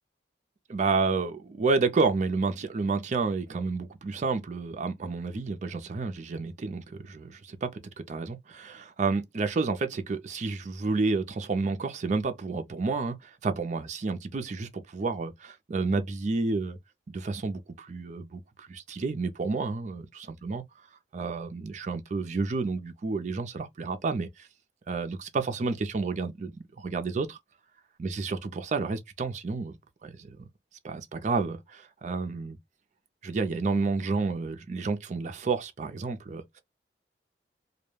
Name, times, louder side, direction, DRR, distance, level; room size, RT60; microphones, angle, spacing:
voice 1, 0.7-16.8 17.1-20.6 21.1-24.5 24.9-27.4 28.0-29.8 30.0-30.4 30.8-32.6 33.2-36.6, right 4 dB, 45° right, 0.4 m, -30 dB
2.2 x 2.1 x 3.1 m
head